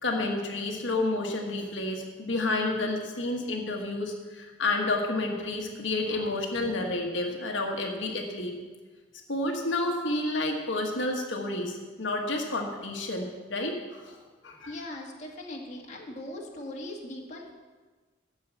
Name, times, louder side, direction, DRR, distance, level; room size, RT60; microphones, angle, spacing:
voice 1, 0.0-8.5 9.3-14.2 14.4-14.8, left 2 dB, 85° left, 1 dB, 1.4 m, -30 dB
voice 2, 14.7-17.5, left 1 dB, 40° left, -1 dB, 1.7 m, -40 dB
12.5 x 4.8 x 8.2 m, 1.3 s
head